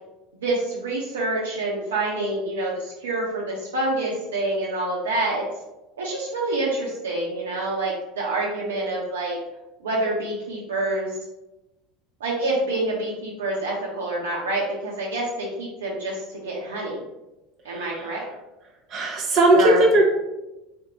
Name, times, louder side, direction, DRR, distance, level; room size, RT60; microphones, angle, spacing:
voice 1, 0.4-5.5 6.0-9.4 9.8-11.1 12.2-17.0 17.6-18.2 19.5-19.8, right 2 dB, 80° right, -4 dB, 0.5 m, -27 dB
voice 2, 18.9-20.0, right 1 dB, 45° right, 0 dB, 0.9 m, -17 dB
3.5 x 2.6 x 2.8 m, 0.98 s
figure-of-eight pair, 75°, 0 cm